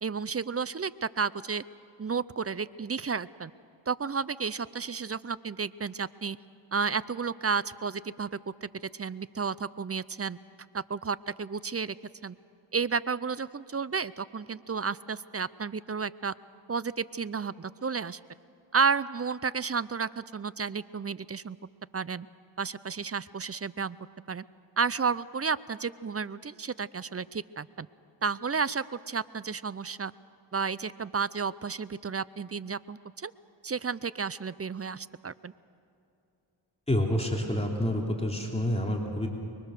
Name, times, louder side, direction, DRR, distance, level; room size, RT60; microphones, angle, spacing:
voice 1, 0.0-1.6 2.0-3.5 3.9-6.4 6.7-8.7 9.0-10.4 10.7-12.0 12.2-12.4 12.7-16.3 16.7-18.2 18.7-21.6 21.9-22.3 22.6-24.0 24.3-24.4 24.8-27.9 28.2-30.1 30.5-33.3 33.6-35.5, right 5 dB, 30° right, 18 dB, 0.5 m, -32 dB
voice 2, 36.9-39.3, left 1 dB, 15° left, -1 dB, 3.3 m, -28 dB
25.0 x 22.5 x 6.7 m, 2.8 s
cardioid pair, 55°, 48 cm